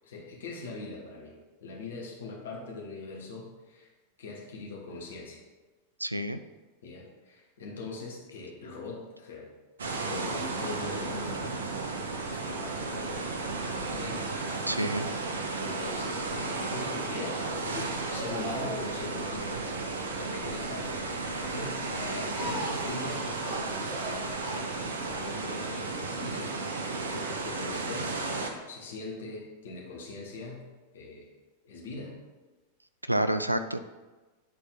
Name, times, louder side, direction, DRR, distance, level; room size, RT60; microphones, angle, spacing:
voice 1, 0.0-1.3 1.6-3.9 4.2-5.4 6.8-9.5 10.1-11.6 12.3-14.3 15.6-19.8 20.1-26.5 27.0-28.3 28.7-30.6 30.9-31.3 31.6-32.2, left 3 dB, 60° left, -2 dB, 1.6 m, -41 dB
voice 2, 6.0-6.4 14.7-15.1 33.1-33.8, right 1 dB, 85° right, 10 dB, 0.3 m, -28 dB
sound 1, 9.8-28.5, right 3 dB, 65° right, 0.7 m, -34 dB
sound 2, 17.3-25.4, right 1 dB, 35° right, 1.8 m, -41 dB
7.9 x 4.2 x 3.8 m, 1.2 s
figure-of-eight pair, 90°, 0 cm